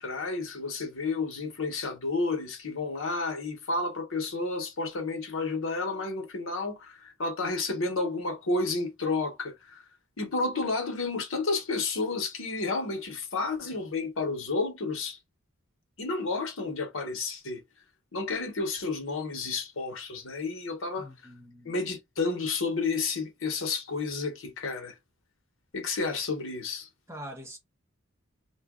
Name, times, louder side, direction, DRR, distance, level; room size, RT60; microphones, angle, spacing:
voice 1, 0.0-9.8 10.2-15.2 16.0-17.6 18.1-21.1 21.6-24.9 25.7-26.9, left 3 dB, 70° left, 1.0 m, -31 dB
voice 2, 21.0-21.7 27.1-27.6, equal, 10° right, 0.7 m, -43 dB
2.9 x 2.4 x 3.6 m
head